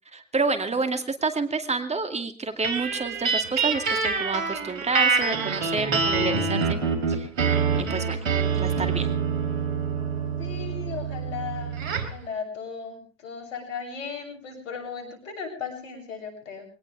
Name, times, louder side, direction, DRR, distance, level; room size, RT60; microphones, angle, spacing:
voice 1, 0.1-6.8 7.1-7.3 7.8-8.2 8.6-9.1, right 4 dB, 15° right, 7 dB, 2.3 m, -29 dB
sound 1, 2.6-12.2, right 5 dB, 85° right, 3.9 m, -26 dB
voice 2, 10.4-16.7, left 6 dB, 80° left, 3 dB, 7.6 m, -36 dB
23.0 x 18.5 x 3.4 m, 0.37 s
hypercardioid pair, 95°, 38 cm